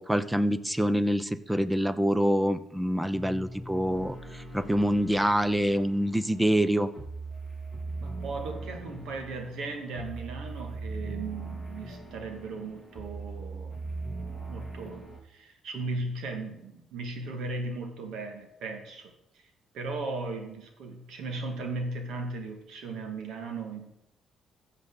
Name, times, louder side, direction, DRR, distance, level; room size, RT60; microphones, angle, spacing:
voice 1, 0.0-6.9, equal, 5° right, 14 dB, 0.8 m, -26 dB
sound 1, 3.1-15.2, right 3 dB, 30° right, 4.3 m, -40 dB
voice 2, 8.0-14.0 14.5-19.4 19.7-23.9, right 3 dB, 80° right, 4 dB, 2.3 m, -37 dB
14.5 x 7.4 x 4.1 m, 0.83 s
cardioid pair, 90°, 0 cm